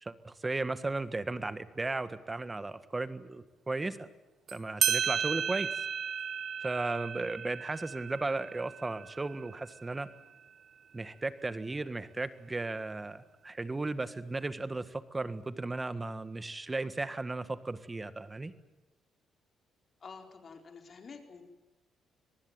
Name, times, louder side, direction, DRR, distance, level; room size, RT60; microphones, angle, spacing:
voice 1, 0.0-4.1 4.5-5.8 6.6-10.1 10.9-18.5, right 2 dB, 20° right, 13 dB, 1.6 m, -35 dB
sound 1, 4.5-4.6 4.8-9.9, right 8 dB, 60° right, 0.9 m, -34 dB
voice 2, 20.0-21.4, left 5 dB, 45° left, 5 dB, 4.3 m, -49 dB
25.5 x 19.5 x 9.0 m, 1.1 s
cardioid pair, 90°, 0 cm